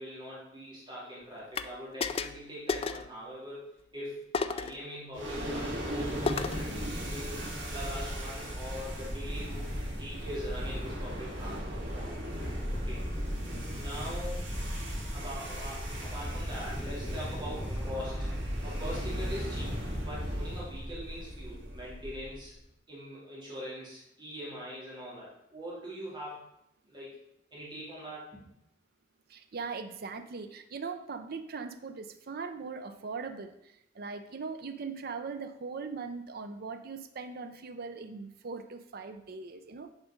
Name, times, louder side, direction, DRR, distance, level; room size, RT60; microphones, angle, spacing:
voice 1, 0.0-7.3 7.7-12.1 12.7-13.0 13.7-14.5 15.1-18.3 18.6-22.5 22.9-26.4 26.8-27.2 27.5-28.4, equal, 25° right, -6 dB, 2.7 m, -42 dB
sound 1, 1.5-1.7 2.0-2.4 2.7-3.1 4.3-4.8 6.3-6.7, left 5 dB, 30° left, 0.3 m, -32 dB
sound 2, 5.1-22.5, equal, 75° right, 2.3 m, -36 dB
sound 3, 15.6-18.4, equal, 5° left, 1.0 m, -47 dB
voice 2, 29.3-39.9, right 4 dB, 55° right, 7 dB, 0.5 m, -40 dB
7.3 x 5.0 x 5.1 m, 0.80 s
head